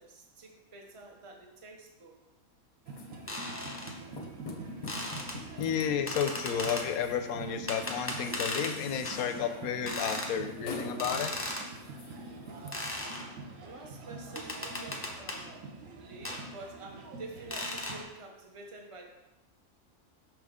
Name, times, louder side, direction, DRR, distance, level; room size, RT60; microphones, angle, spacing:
voice 1, 0.0-2.2 13.6-15.6 16.0-19.0, right 3 dB, 25° right, 1 dB, 0.8 m, -48 dB
sound 1, 2.9-12.7, left 3 dB, 40° left, 0.7 m, -47 dB
sound 2, 2.9-18.0, right 2 dB, 65° right, 1.2 m, -45 dB
sound 3, 3.3-3.9 4.9-5.4 6.1-6.9 7.7-8.7 9.0-9.2 9.9-10.3 11.0-11.7 12.7-13.3 14.4-15.4 16.2-16.4 17.5-18.0, left 1 dB, 10° left, 0.8 m, -36 dB
voice 2, 5.6-11.3, left 7 dB, 80° left, 8 dB, 1.1 m, -32 dB
6.1 x 5.9 x 3.6 m, 0.99 s
omnidirectional pair, 1.5 m